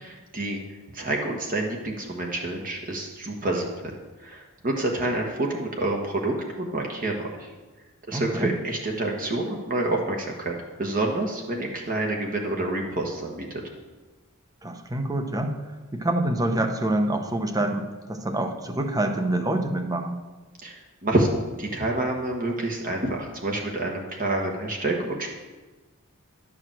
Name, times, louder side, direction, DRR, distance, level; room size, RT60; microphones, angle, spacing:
voice 1, 0.9-3.9 4.2-7.5 8.1-13.5 20.6-21.3 21.6-25.3, right 2 dB, 40° right, 0 dB, 1.2 m, -28 dB
voice 2, 8.1-8.6 14.6-20.2, right 1 dB, 15° right, 5 dB, 0.8 m, -26 dB
11.0 x 4.9 x 7.5 m, 1.3 s
head